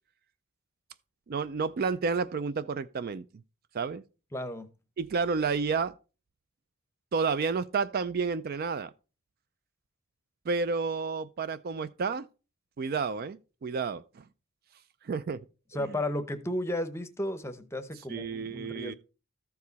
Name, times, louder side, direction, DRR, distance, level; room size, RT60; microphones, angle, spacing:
voice 1, 1.3-3.2 3.7-4.0 5.0-5.9 7.1-8.9 10.5-12.3 12.8-14.2 15.0-15.5 15.8-16.0 18.1-18.9, right 5 dB, 45° right, 0.3 m, -30 dB
voice 2, 4.3-4.7 15.7-18.9, left 1 dB, 10° left, 0.8 m, -34 dB
13.5 x 4.7 x 4.0 m
head